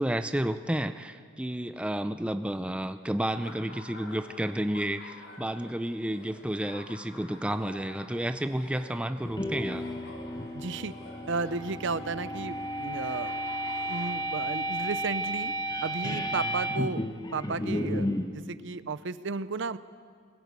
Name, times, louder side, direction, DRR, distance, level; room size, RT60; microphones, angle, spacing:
voice 1, 0.0-9.8, right 1 dB, 5° right, 10 dB, 0.5 m, -31 dB
Laughter, 3.2-14.1, left 2 dB, 55° left, 2.7 m, -49 dB
sound 1, 9.2-18.3, equal, 20° left, 1.0 m, -33 dB
voice 2, 10.5-10.9 11.3-13.3 13.9-15.5 15.8-19.8, right 4 dB, 60° right, 14 dB, 0.7 m, -34 dB
22.0 x 17.5 x 8.5 m, 2.1 s
head